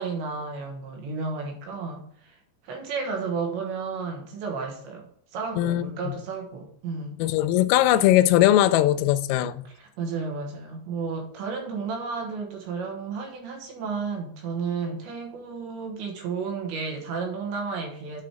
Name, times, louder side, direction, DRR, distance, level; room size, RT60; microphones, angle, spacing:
voice 1, 0.0-2.4 2.6-5.1 5.3-7.2 9.6-18.2, right 5 dB, 70° right, 3.3 m, -32 dB
voice 2, 5.6-6.2 7.2-9.7, left 13 dB, 85° left, 3.2 m, -20 dB
9.4 x 4.9 x 4.9 m
omnidirectional pair, 5.8 m